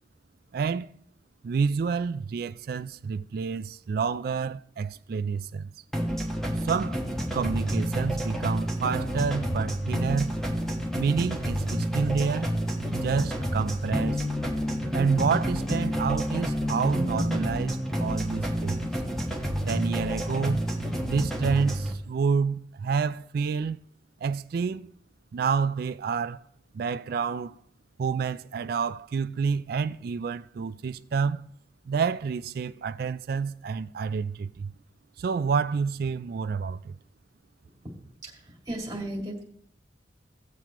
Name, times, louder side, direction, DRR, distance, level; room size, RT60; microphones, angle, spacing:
voice 1, 0.5-0.9 1.4-5.7 6.6-7.0 7.3-10.4 10.9-12.5 12.9-14.2 14.9-18.9 19.7-20.6 21.0-23.8 24.2-24.9 25.3-26.4 26.7-27.5 28.0-31.5 31.9-34.7 35.2-37.0, right 5 dB, 55° right, 0.3 m, -28 dB
sound 1, 5.9-21.9, equal, 5° left, 1.4 m, -29 dB
voice 2, 38.7-39.4, right 1 dB, 20° right, 2.2 m, -34 dB
17.5 x 7.4 x 3.0 m
head